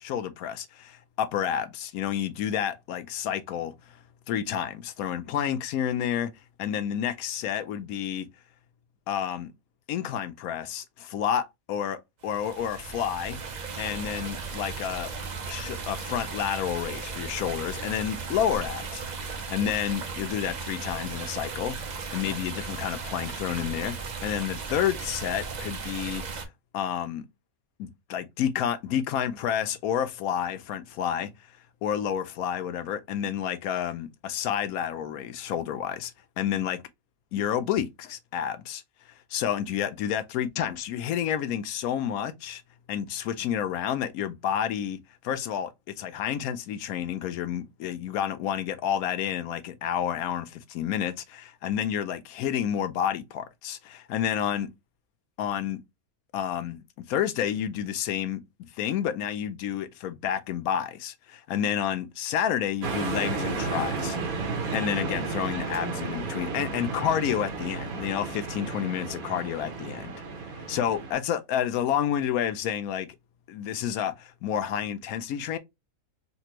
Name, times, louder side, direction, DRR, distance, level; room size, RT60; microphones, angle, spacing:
voice 1, 0.0-4.0 4.3-6.3 6.6-8.3 9.1-9.5 9.9-13.4 13.8-15.1 15.5-21.8 22.1-26.2 26.7-27.3 27.8-31.3 31.8-36.1 36.4-36.8 37.3-38.8 39.3-42.6 42.9-45.0 45.2-54.7 55.4-55.8 56.3-64.2 64.4-70.1 70.7-73.1 73.5-75.6, left 9 dB, 85° left, 1.1 m, -30 dB
sound 1, 12.2-26.5, right 5 dB, 50° right, 0.5 m, -36 dB
sound 2, 62.8-71.1, right 4 dB, 80° right, 1.4 m, -33 dB
4.2 x 2.2 x 2.8 m
omnidirectional pair, 1.5 m